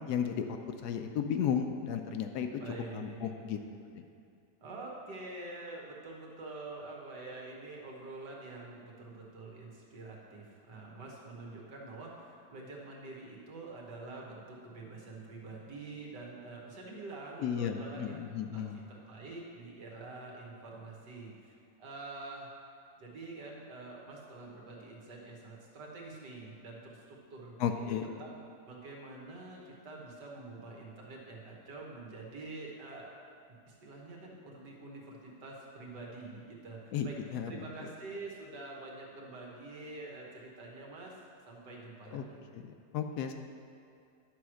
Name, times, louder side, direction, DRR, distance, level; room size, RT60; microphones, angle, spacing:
voice 1, 0.1-0.6 0.8-2.5 2.9-3.6 17.4-18.8 27.6-28.1 36.9-37.6 42.1-42.2 42.5-43.3, left 8 dB, 75° left, 6 dB, 1.1 m, -34 dB
voice 2, 2.6-3.3 4.6-18.2 18.5-22.5 23.0-33.1 33.5-37.2 37.5-41.2 41.5-42.4, right 2 dB, 75° right, -2 dB, 2.0 m, -46 dB
10.5 x 4.7 x 6.3 m, 2.4 s
omnidirectional pair, 1.8 m